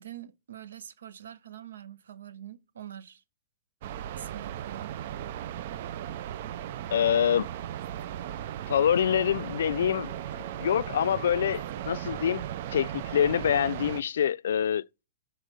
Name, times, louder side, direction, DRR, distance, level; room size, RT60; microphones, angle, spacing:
voice 1, 0.0-3.2 4.2-4.9, right 10 dB, 90° right, 0.9 m, -45 dB
sound 1, 3.8-14.0, right 11 dB, 55° right, 0.4 m, -37 dB
sound 2, 3.9-12.7, right 1 dB, 10° right, 3.4 m, -60 dB
voice 2, 6.9-7.5 8.7-10.1 10.6-12.4 12.7-14.8, left 9 dB, 80° left, 0.4 m, -25 dB
sound 3, 8.8-13.8, right 6 dB, 25° right, 3.5 m, -52 dB
6.7 x 3.9 x 6.2 m
hypercardioid pair, 150°, 0 cm